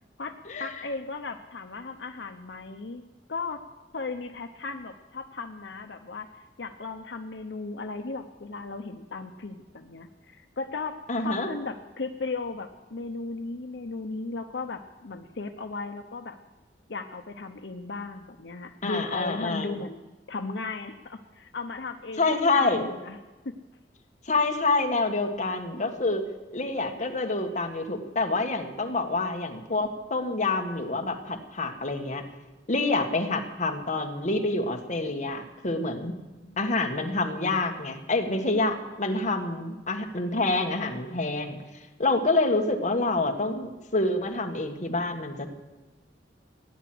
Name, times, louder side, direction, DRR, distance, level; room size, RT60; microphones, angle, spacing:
voice 1, 0.2-3.0 3.3-3.6 3.9-16.4 16.9-23.2 23.4-23.5, left 3 dB, 75° left, 6 dB, 0.8 m, -36 dB
voice 2, 11.1-11.5 18.8-19.8 22.2-22.8 24.2-26.2 26.5-32.2 32.7-36.1 36.6-41.6 42.0-45.5, left 2 dB, 45° left, 3 dB, 1.6 m, -27 dB
17.0 x 10.0 x 7.8 m, 1.2 s
head